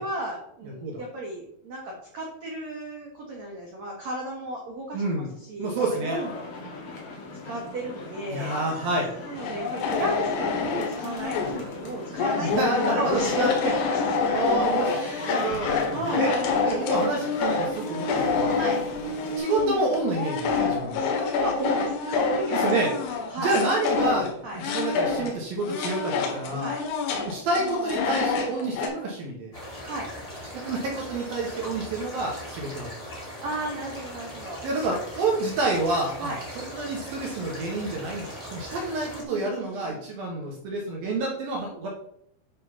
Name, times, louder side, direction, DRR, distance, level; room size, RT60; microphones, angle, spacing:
voice 1, 0.0-6.5 7.4-8.5 9.3-14.2 14.4-16.7 18.5-18.8 20.9-23.5 24.4-24.6 26.6-26.8 29.8-30.1 33.4-34.6 36.2-36.4 39.3-40.0, right 1 dB, 85° right, -2 dB, 1.5 m, -34 dB
voice 2, 4.9-5.3 5.6-6.2 8.3-9.1 12.4-13.5 14.3-14.9 15.2-15.9 16.2-16.3 16.7-18.6 19.2-21.1 22.5-22.9 23.4-26.7 27.2-29.5 30.5-32.9 34.6-36.3 36.6-41.9, right 2 dB, 65° right, -1 dB, 2.4 m, -28 dB
sound 1, 6.1-19.4, left 3 dB, 65° left, 1.5 m, -40 dB
sound 2, 9.4-11.6 12.2-25.3 25.6-28.9, left 4 dB, 85° left, 4.1 m, -27 dB
sound 3, 29.5-39.2, equal, 10° left, 2.0 m, -40 dB
10.0 x 4.2 x 5.6 m, 0.71 s
omnidirectional pair, 5.8 m